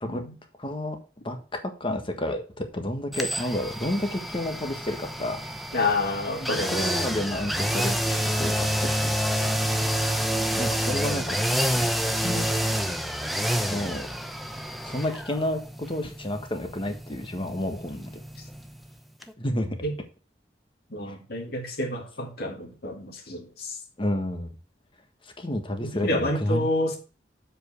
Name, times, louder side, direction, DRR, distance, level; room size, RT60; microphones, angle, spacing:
voice 1, 0.0-0.4 5.7-6.9 19.8-19.9 20.9-23.8 25.8-27.0, left 2 dB, 60° left, 2.4 m, -29 dB
voice 2, 0.6-1.0 1.2-5.4 6.4-9.1 10.6-11.4 12.2-12.5 13.7-14.1 14.8-18.2 19.4-19.8 24.0-24.5 25.4-26.6, left 1 dB, 30° left, 1.5 m, -30 dB
sound 1, 3.1-18.9 19.2-19.3, equal, ahead, 0.7 m, -28 dB
7.6 x 5.3 x 6.2 m
head